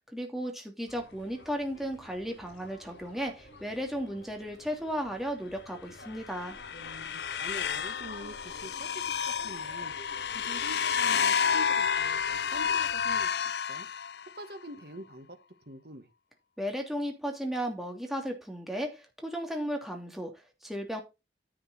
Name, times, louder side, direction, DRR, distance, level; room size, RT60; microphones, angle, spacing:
voice 1, 0.1-6.6 16.6-21.0, equal, ahead, 2.8 m, -35 dB
sound 1, 0.9-13.3, left 1 dB, 85° left, 4.1 m, -51 dB
sound 2, 6.2-14.5, left 7 dB, 65° left, 0.5 m, -30 dB
voice 2, 6.7-9.9 10.3-13.9 14.3-15.4 15.7-16.1, right 1 dB, 55° right, 1.7 m, -45 dB
10.5 x 6.7 x 4.3 m
head